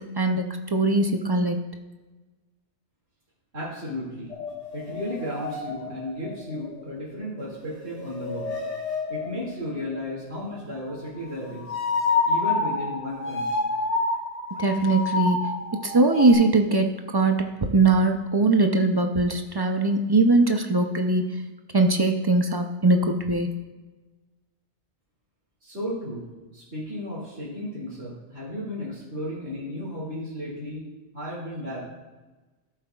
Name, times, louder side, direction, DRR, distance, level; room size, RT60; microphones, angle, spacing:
voice 1, 0.7-1.6 14.6-15.5 15.8-21.2 21.7-23.5, right 2 dB, 40° right, 4 dB, 0.3 m, -21 dB
voice 2, 3.5-4.3 4.7-8.5 9.1-11.8 12.2-13.6 25.6-26.2 26.5-30.8 31.1-31.8, left 1 dB, 65° right, -9 dB, 2.6 m, -34 dB
sound 1, 4.3-7.2 7.5-10.0 11.5-16.3, left 3 dB, 35° left, 1.5 m, -29 dB
14.0 x 7.7 x 2.3 m, 1.2 s
omnidirectional pair, 1.2 m